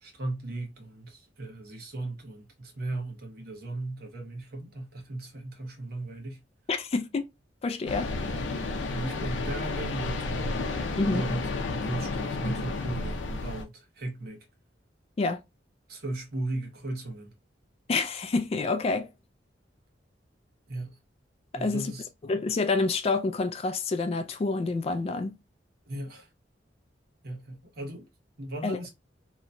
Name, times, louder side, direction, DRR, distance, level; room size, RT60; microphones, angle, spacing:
voice 1, 0.0-6.4 8.9-10.5 11.1-14.5 15.9-17.3 20.7-21.0 21.5-22.1 25.9-26.3 27.2-28.1 28.4-28.9, right 2 dB, 55° right, 0.9 m, -36 dB
voice 2, 6.7-7.3 7.6-8.1 11.0-11.2 15.2-15.4 17.9-19.1 21.5-21.9 22.3-25.3 28.6-28.8, left 3 dB, 35° left, 0.3 m, -28 dB
sound 1, 7.9-13.6, left 3 dB, 85° left, 0.5 m, -31 dB
2.8 x 2.1 x 2.6 m
head